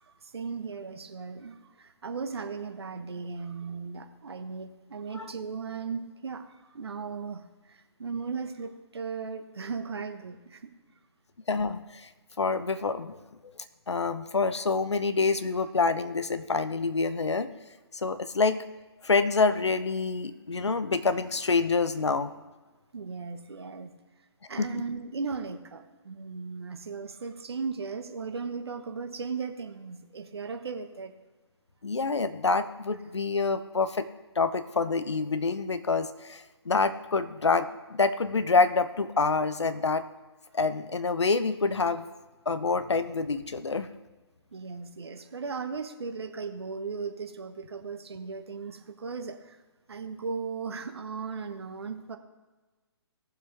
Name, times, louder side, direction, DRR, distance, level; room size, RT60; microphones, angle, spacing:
voice 1, 0.3-6.5 6.7-7.4 8.0-10.7 22.9-23.9 24.5-31.1 44.5-49.6 49.9-52.2, right 5 dB, 65° right, 8 dB, 1.3 m, -37 dB
voice 2, 11.5-12.1 12.4-13.2 13.9-17.5 17.9-18.6 19.0-22.3 24.6-24.8 31.8-34.1 34.4-40.0 40.5-42.0 42.5-43.9, left 4 dB, 75° left, 12 dB, 1.0 m, -27 dB
19.0 x 7.4 x 3.5 m, 1.2 s
figure-of-eight pair, 140°, 14 cm